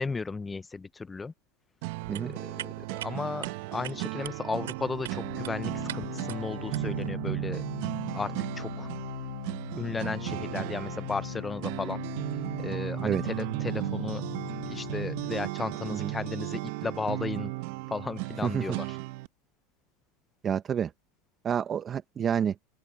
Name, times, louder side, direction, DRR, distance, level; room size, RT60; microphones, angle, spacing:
voice 1, 0.0-1.3 2.2-7.6 8.1-8.9 9.8-12.0 12.6-14.2 14.6-17.5 17.9-19.0, left 4 dB, 10° left, 0.5 m, -35 dB
sound 1, 1.8-19.3, right 21 dB, 55° right, 0.8 m, -35 dB
sound 2, 1.9-7.1, right 13 dB, 85° right, 5.1 m, -44 dB
Organ, 4.8-15.5, left 26 dB, 55° left, 4.6 m, -40 dB
voice 2, 18.4-18.8 20.4-20.9 21.4-22.6, right 8 dB, 25° right, 0.7 m, -28 dB
open air
supercardioid pair, 145°, 0 cm